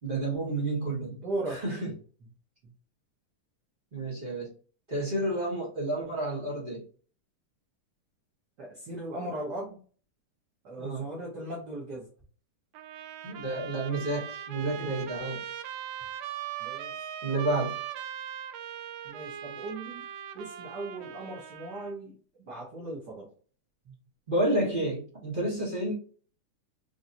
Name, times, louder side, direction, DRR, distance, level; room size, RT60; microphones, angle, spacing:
voice 1, 0.0-1.2 1.5-1.9 3.9-4.5 4.9-6.8 10.8-11.1 13.2-15.4 17.2-17.7 24.3-25.9, right 1 dB, 40° right, -6 dB, 0.7 m, -30 dB
voice 2, 1.1-1.8 8.6-9.8 10.6-12.1 16.6-17.2 19.0-20.0 20.3-23.3 23.8-23.9, right 2 dB, 65° right, -4 dB, 1.0 m, -38 dB
Trumpet, 12.7-21.9, right 10 dB, 85° right, 2.1 m, -40 dB
5.8 x 2.8 x 2.6 m, 0.41 s
omnidirectional pair, 3.6 m